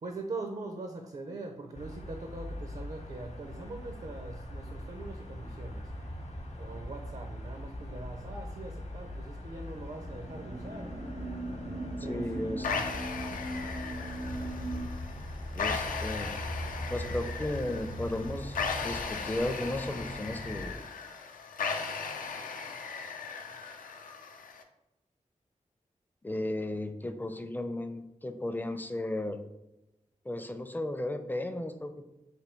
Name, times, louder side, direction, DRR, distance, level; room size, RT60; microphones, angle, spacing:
voice 1, 0.0-5.9 6.6-11.0 12.0-12.8, right 2 dB, 55° right, 3 dB, 0.5 m, -42 dB
sound 1, 1.7-20.8, left 1 dB, 55° left, 0.8 m, -41 dB
sound 2, 9.6-14.8, right 2 dB, 85° right, 1.2 m, -40 dB
voice 2, 12.0-12.7 15.6-16.3 16.9-20.8 26.2-29.4 30.2-32.0, left 1 dB, 15° left, 8 dB, 0.4 m, -35 dB
sound 3, 12.6-24.6, left 5 dB, 90° left, 0.4 m, -37 dB
3.4 x 2.3 x 4.4 m, 0.96 s
cardioid pair, 40°, 14 cm